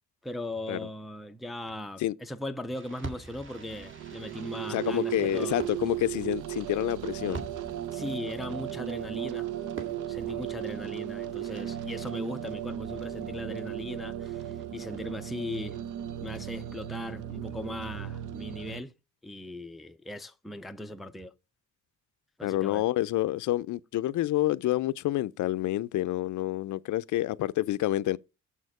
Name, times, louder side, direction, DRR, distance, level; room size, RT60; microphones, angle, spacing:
voice 1, 0.2-5.6 7.9-9.5 10.1-15.8 16.2-18.9 19.2-21.3 22.4-22.9, left 1 dB, ahead, 0.4 m, -38 dB
Fireworks, 2.7-12.9, right 3 dB, 40° right, 1.9 m, -47 dB
sound 1, 3.6-18.8, right 11 dB, 85° right, 0.8 m, -36 dB
voice 2, 4.7-7.5 22.4-28.2, left 15 dB, 75° left, 0.5 m, -28 dB
7.2 x 6.4 x 4.8 m
wide cardioid pair, 175°, 30 cm